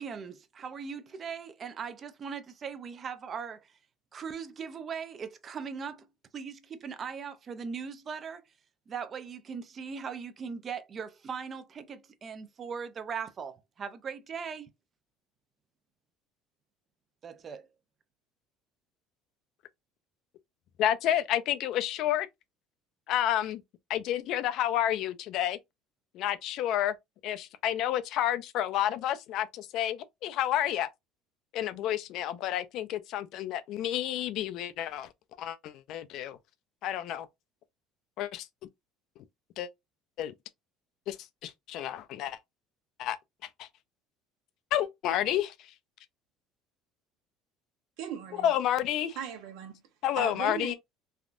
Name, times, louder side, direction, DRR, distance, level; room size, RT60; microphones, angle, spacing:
voice 1, 0.0-3.7 4.1-6.1 6.3-8.4 8.9-14.7 17.2-17.7, right 6 dB, 30° right, 0.5 m, -39 dB
voice 2, 20.8-22.3 23.1-23.6 23.9-25.6 26.1-26.9 27.2-30.9 31.5-35.1 35.4-36.4 36.8-37.3 38.2-38.5 39.6-39.7 40.2-40.3 41.1-41.2 41.4-42.4 43.0-43.2 44.7-45.5 48.4-49.2 50.0-50.7, left 11 dB, 60° left, 0.4 m, -30 dB
voice 3, 48.0-48.5 49.2-49.8 50.1-50.7, right 8 dB, 75° right, 0.8 m, -38 dB
3.4 x 2.3 x 2.5 m
cardioid pair, 135°, 0 cm